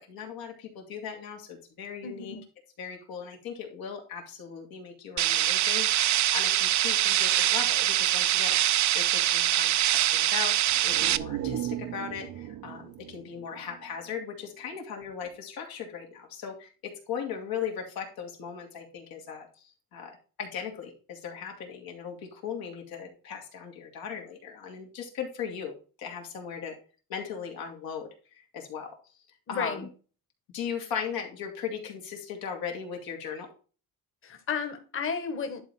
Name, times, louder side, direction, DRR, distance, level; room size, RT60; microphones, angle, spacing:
voice 1, 0.0-2.4 2.8-10.5 10.8-25.7 26.0-26.7 27.1-28.1 28.3-29.0 29.5-29.9 30.5-33.5, left 7 dB, 80° left, 2 dB, 2.9 m, -38 dB
voice 2, 2.0-2.4 29.5-29.9 34.2-35.6, left 5 dB, 35° left, 6 dB, 1.5 m, -33 dB
sound 1, 5.2-11.2, right 13 dB, 55° right, 0.5 m, -24 dB
sound 2, 10.7-14.4 14.8-14.9, right 11 dB, 85° right, 0.9 m, -37 dB
11.0 x 4.2 x 4.4 m, 0.37 s
cardioid pair, 145°, 35 cm